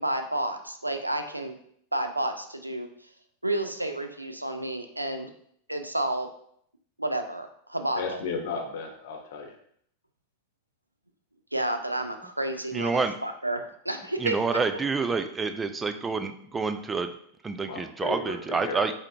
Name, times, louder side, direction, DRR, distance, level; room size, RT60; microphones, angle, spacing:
voice 1, 0.0-1.6 1.9-2.9 3.4-5.3 5.7-6.3 7.0-8.2 11.5-14.4, right 1 dB, 85° right, 6 dB, 0.4 m, -30 dB
voice 2, 7.9-9.5 17.7-18.9, left 4 dB, 55° left, 3 dB, 0.8 m, -34 dB
voice 3, 12.7-13.1 14.2-17.1 17.4-18.9, right 4 dB, 15° right, 9 dB, 0.3 m, -28 dB
4.8 x 2.8 x 3.3 m, 0.66 s
figure-of-eight pair, 90°, 0 cm